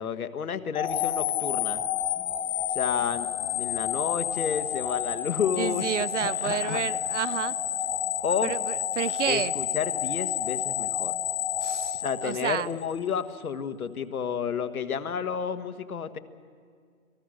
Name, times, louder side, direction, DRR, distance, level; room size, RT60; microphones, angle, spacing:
voice 1, 0.0-1.8 2.7-5.9 6.2-6.8 8.2-8.5 9.2-11.1 11.9-16.2, left 7 dB, 80° left, 9 dB, 1.6 m, -31 dB
sound 1, 0.7-12.9, left 11 dB, 35° left, 1.3 m, -30 dB
voice 2, 5.6-7.6 8.4-9.5 11.6-12.7, right 10 dB, 55° right, 18 dB, 0.6 m, -30 dB
28.5 x 18.0 x 6.4 m, 2.1 s
hypercardioid pair, 155°, 42 cm